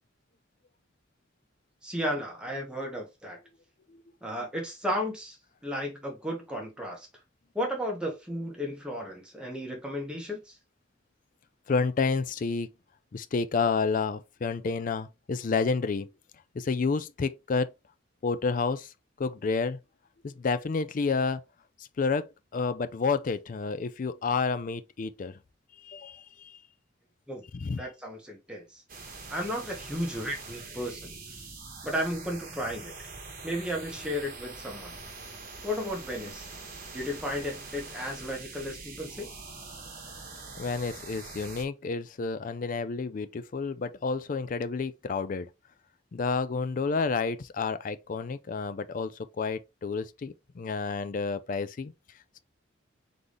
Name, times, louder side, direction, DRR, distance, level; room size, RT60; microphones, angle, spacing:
voice 1, 1.8-3.4 4.2-5.4 5.6-7.1 7.5-10.6 27.3-27.4 27.8-28.8 29.3-31.2 31.8-32.9 33.4-34.9 35.6-36.5 36.9-39.3, equal, 5° right, 1.4 m, -34 dB
voice 2, 11.7-12.7 13.1-16.1 16.5-17.7 18.2-19.8 20.2-21.4 21.8-25.4 25.8-26.6 27.5-27.9 40.6-45.5 46.1-51.9, left 4 dB, 40° left, 0.4 m, -30 dB
Extreme Ambience, 28.9-41.6, right 3 dB, 45° right, 1.3 m, -44 dB
3.9 x 3.6 x 3.3 m
head